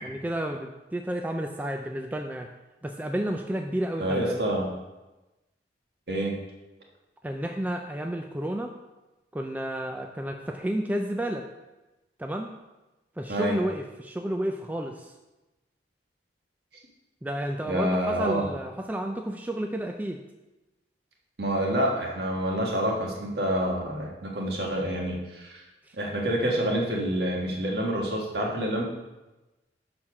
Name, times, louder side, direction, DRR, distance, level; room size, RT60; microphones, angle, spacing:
voice 1, 0.0-2.5 2.8-4.4 7.2-8.7 9.3-11.5 12.2-12.5 13.2-15.1 17.2-20.2 25.9-26.0, right 1 dB, 10° right, 3 dB, 0.3 m, -31 dB
voice 2, 4.0-4.7 6.1-6.3 13.3-13.6 17.7-18.5 21.4-25.6 25.9-28.8, right 1 dB, 60° right, -1 dB, 1.5 m, -27 dB
6.6 x 4.4 x 5.8 m, 1.1 s
head